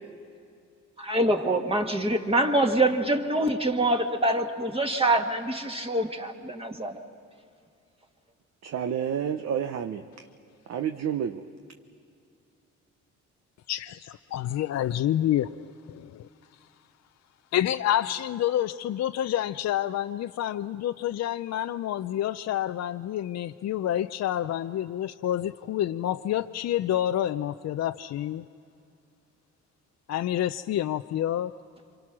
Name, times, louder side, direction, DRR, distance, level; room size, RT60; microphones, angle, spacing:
voice 1, 1.0-6.9, right 1 dB, 20° right, 3 dB, 1.9 m, -25 dB
voice 2, 8.6-10.1 10.7-11.4, right 8 dB, 60° right, 7 dB, 0.9 m, -29 dB
voice 3, 13.7-16.3 17.5-28.5 30.1-31.5, left 11 dB, 60° left, 9 dB, 0.5 m, -28 dB
28.5 x 25.5 x 6.2 m, 2.4 s
cardioid pair, 90°, 30 cm